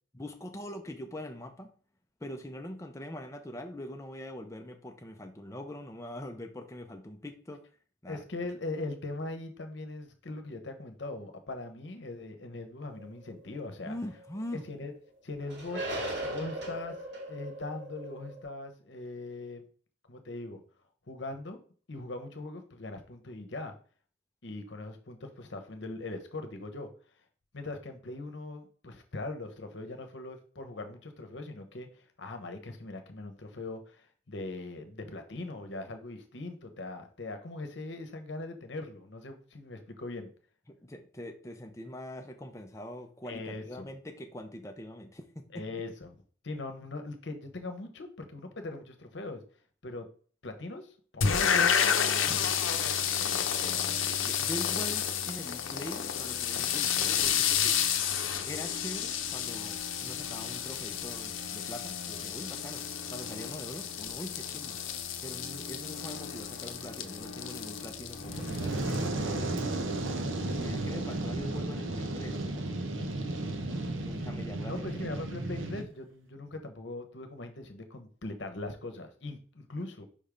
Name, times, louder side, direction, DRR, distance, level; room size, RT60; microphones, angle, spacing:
voice 1, 0.1-1.7 2.2-7.7 8.0-8.2 13.8-14.6 40.7-45.6 53.2-57.8 58.5-64.8 65.2-69.6 70.5-72.8 73.6-75.2, left 1 dB, 15° left, 5 dB, 0.6 m, -43 dB
voice 2, 8.1-14.0 14.5-14.9 15.2-15.9 16.2-16.9 17.3-19.7 20.1-20.6 21.1-21.6 21.9-23.7 24.4-26.9 27.5-31.9 32.2-40.3 43.2-43.9 45.5-46.2 46.4-49.4 49.8-50.1 50.4-51.5 52.2-52.4 53.8-53.9 72.9-73.2 74.7-80.1, left 2 dB, 60° left, 6 dB, 1.0 m, -40 dB
sound 1, 12.9-14.3 14.6-14.7 15.4-18.4, right 1 dB, 55° right, 1.8 m, -38 dB
sound 2, 51.2-69.1, left 8 dB, 85° left, 0.7 m, -31 dB
Fire, 68.2-75.8, right 2 dB, 75° right, 0.8 m, -33 dB
5.4 x 3.5 x 5.1 m, 0.42 s
head